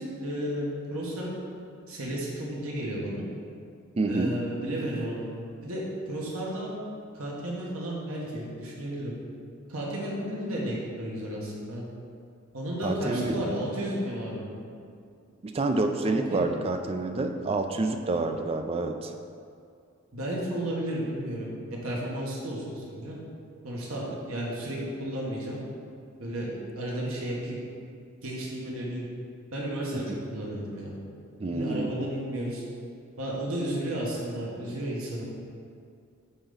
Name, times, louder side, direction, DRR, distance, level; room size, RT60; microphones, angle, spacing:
voice 1, 0.0-1.4 1.9-3.2 4.0-5.3 5.6-6.7 7.1-9.1 9.7-11.9 12.5-14.5 16.0-16.5 20.1-21.5 21.8-23.2 23.6-25.6 26.2-27.6 28.2-29.0 29.5-30.9 31.5-32.6 33.2-35.2, right 1 dB, 85° right, -4 dB, 1.5 m, -33 dB
voice 2, 4.0-4.3 12.8-13.4 15.4-19.1 30.1-30.2 31.4-31.9, right 2 dB, 30° right, 6 dB, 0.3 m, -28 dB
8.8 x 4.0 x 4.0 m, 2.3 s
head